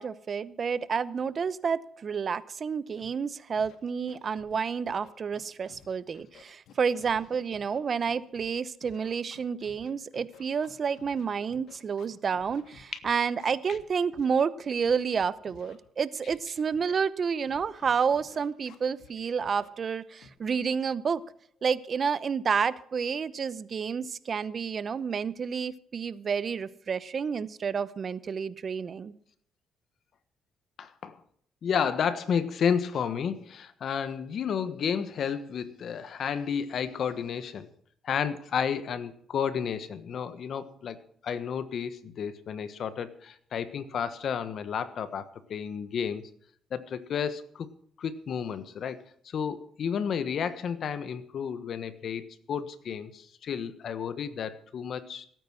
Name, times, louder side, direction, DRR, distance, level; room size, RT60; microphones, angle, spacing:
voice 1, 0.0-21.2 21.6-29.1, right 6 dB, 45° right, 17 dB, 0.8 m, -30 dB
Scratching (performance technique), 3.0-3.1 3.5-3.8 4.1-4.6 4.9-5.9 6.1-8.5 8.8-13.8 14.1-14.4 14.8-15.8 16.3-16.4 16.7-17.1 17.5-19.1 19.4-19.7 20.2-20.4, left 7 dB, 80° left, 1.9 m, -54 dB
voice 2, 30.8-31.2 31.6-37.7 38.0-46.2 46.7-47.7 48.0-55.3, left 7 dB, 60° left, 13 dB, 1.3 m, -32 dB
17.0 x 9.3 x 6.3 m, 0.64 s
cardioid pair, 90°, 0 cm